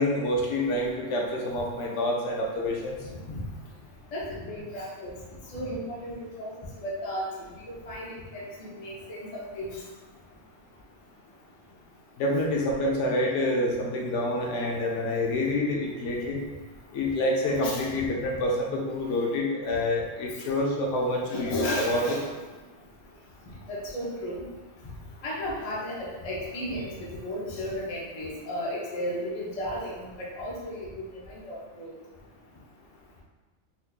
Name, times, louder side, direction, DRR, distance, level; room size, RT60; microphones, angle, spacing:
voice 1, 0.0-3.0 12.2-16.4 16.9-22.1, left 1 dB, 75° left, -1 dB, 1.0 m, -27 dB
voice 2, 3.1-3.4 4.1-5.2 5.5-6.5 6.8-7.2 7.7-9.8 17.5-17.9 21.3-22.3 23.7-24.4 25.2-26.9 27.2-30.0 30.4-30.9 31.3-31.9, left 1 dB, 35° left, -5 dB, 0.6 m, -34 dB
4.2 x 2.6 x 2.3 m, 1.3 s
omnidirectional pair, 1.3 m